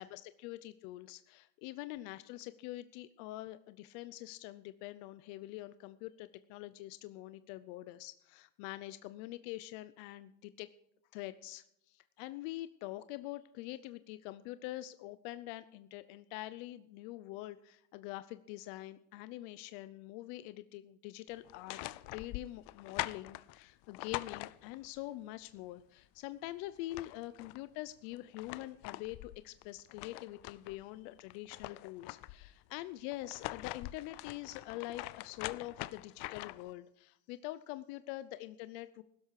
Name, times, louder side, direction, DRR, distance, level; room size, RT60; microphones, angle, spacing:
voice 1, 0.0-10.7 11.1-39.0, left 16 dB, 90° left, 14 dB, 0.8 m, -45 dB
sound 1, 21.4-25.0 26.4-26.5 26.8-27.6 28.1-30.8 31.2-32.5 33.1-36.7, left 18 dB, 60° left, 0.6 m, -44 dB
16.0 x 12.5 x 4.8 m, 0.76 s
cardioid pair, 160°, 46 cm